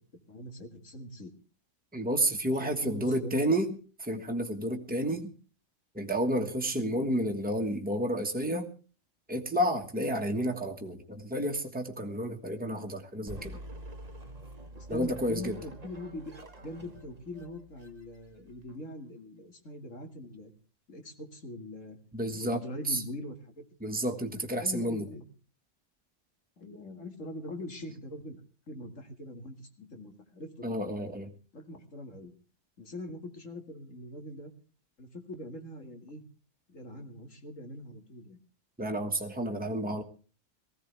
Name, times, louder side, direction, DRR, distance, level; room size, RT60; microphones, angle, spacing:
voice 1, 0.3-1.3 2.6-3.5 5.0-5.2 6.8-6.9 14.7-20.5 20.9-22.0 22.3-23.7 24.6-25.3 26.6-28.4 28.7-30.9 31.5-32.3 32.8-34.5 35.0-36.2 36.7-38.4, left 1 dB, 80° left, 5 dB, 2.5 m, -42 dB
voice 2, 1.9-3.7 4.0-5.3 5.9-8.7 9.3-13.6 14.9-15.6 22.1-22.6 22.9-23.0 23.8-25.1 30.6-31.3 38.8-40.0, right 1 dB, 5° right, 3 dB, 1.5 m, -30 dB
sound 1, 13.3-18.7, right 1 dB, 35° right, 1.4 m, -47 dB
19.0 x 15.5 x 3.4 m, 0.38 s
omnidirectional pair, 1.3 m